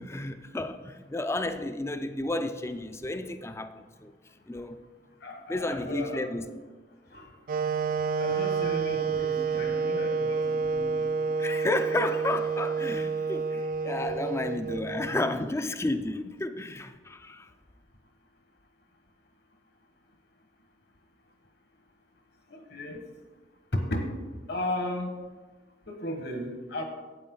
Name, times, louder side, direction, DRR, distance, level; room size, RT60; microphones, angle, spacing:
voice 1, 0.0-4.1 4.5-4.8 5.5-6.5 11.4-17.5, left 2 dB, 15° left, 10 dB, 0.4 m, -32 dB
voice 2, 5.2-6.3 7.1-7.3 8.2-11.3 22.5-23.0 23.7-24.1 24.5-25.1 25.9-26.8, left 1 dB, 60° left, 4 dB, 1.5 m, -34 dB
Wind instrument woodwind instrument, 7.5-15.4, right 5 dB, 50° right, 0.5 m, -29 dB
12.0 x 8.7 x 3.9 m, 1.3 s
head